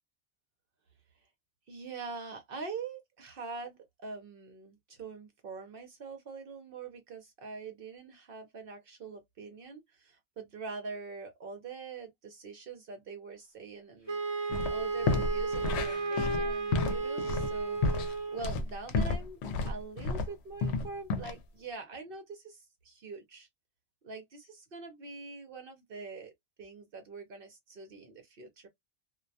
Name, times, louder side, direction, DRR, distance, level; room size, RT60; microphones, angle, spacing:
voice 1, 1.7-19.4 19.7-23.5 24.0-26.3 26.6-28.7, right 4 dB, 60° right, 0.7 m, -44 dB
Wind instrument woodwind instrument, 14.1-18.5, right 3 dB, 25° right, 0.7 m, -33 dB
sound 1, 14.5-14.7 15.0-20.3 20.6-21.3, left 3 dB, 75° left, 0.8 m, -31 dB
2.2 x 2.1 x 2.5 m
omnidirectional pair, 1.2 m